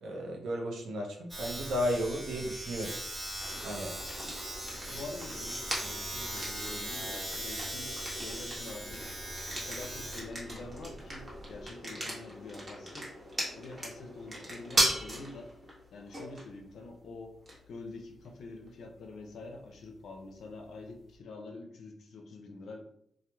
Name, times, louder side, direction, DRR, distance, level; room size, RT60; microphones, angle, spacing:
voice 1, 0.0-3.0 3.6-4.3, equal, 90° right, 0 dB, 0.5 m, -34 dB
Domestic sounds home sounds, 1.3-11.7, right 1 dB, 25° right, 1.4 m, -40 dB
sound 1, 3.4-21.1, right 1 dB, 40° right, 1.0 m, -39 dB
voice 2, 4.9-9.1 9.5-13.1 13.6-15.5 15.9-17.4 17.7-22.9, left 3 dB, 75° left, 2 dB, 0.4 m, -46 dB
2.9 x 2.0 x 2.2 m, 0.72 s
cardioid pair, 70°, 0 cm